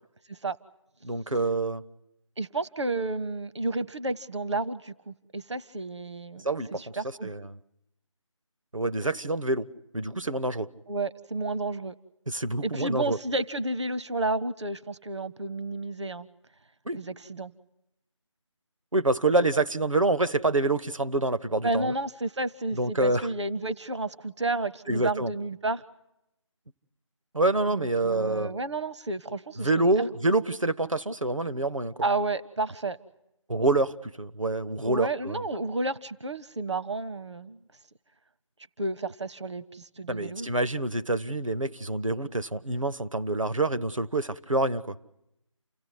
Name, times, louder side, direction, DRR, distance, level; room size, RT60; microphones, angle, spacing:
voice 1, 1.0-1.8 6.4-7.0 7.2-7.6 8.7-9.7 9.9-10.7 12.3-13.2 16.9-17.0 18.9-21.9 22.7-23.3 24.9-25.3 27.3-28.5 29.6-31.9 33.5-35.4 40.1-44.9, right 2 dB, 80° right, 1.1 m, -27 dB
voice 2, 2.4-6.4 6.7-7.3 10.9-11.9 12.6-16.3 16.9-17.5 21.6-25.8 27.7-29.9 32.0-33.0 34.8-37.6 38.8-40.5, right 2 dB, 60° right, 0.8 m, -31 dB
29.5 x 17.0 x 9.5 m
figure-of-eight pair, 160°, 16 cm